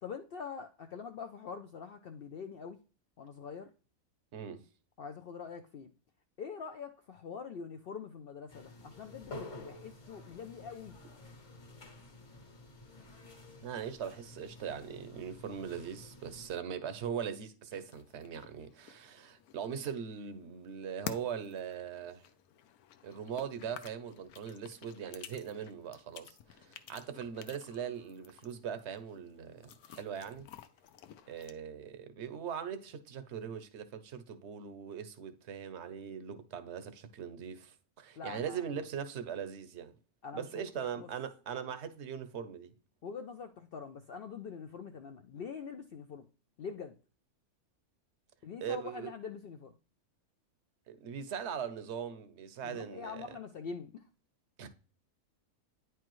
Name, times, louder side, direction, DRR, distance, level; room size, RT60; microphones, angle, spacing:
voice 1, 0.0-2.8 3.2-3.7 5.0-5.9 6.4-10.9 38.2-38.6 40.2-41.1 43.0-46.2 46.6-46.9 48.4-49.7 52.6-54.0, left 6 dB, 70° left, 0.5 m, -44 dB
voice 2, 4.3-4.6 13.6-22.2 23.0-30.5 31.3-39.9 40.3-42.7 48.6-49.1 50.9-53.4 54.6-54.7, right 8 dB, 55° right, 0.9 m, -40 dB
sound 1, 8.5-16.5, left 2 dB, 55° left, 1.8 m, -51 dB
sound 2, 17.7-31.5, left 10 dB, 90° left, 1.1 m, -51 dB
9.5 x 4.7 x 3.0 m
omnidirectional pair, 1.5 m